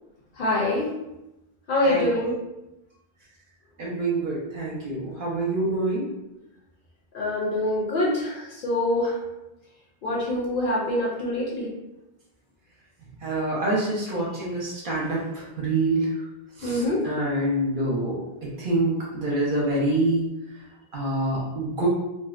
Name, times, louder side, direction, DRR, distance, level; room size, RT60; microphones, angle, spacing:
voice 1, 0.3-0.9 1.7-2.4 7.1-9.2 10.0-11.7 16.6-17.1, left 1 dB, 65° left, -4 dB, 0.7 m, -25 dB
voice 2, 3.8-6.1 13.2-16.1 16.6-20.3 20.9-21.9, right 2 dB, 65° right, -5 dB, 0.7 m, -26 dB
2.6 x 2.0 x 2.4 m, 0.94 s
omnidirectional pair, 1.0 m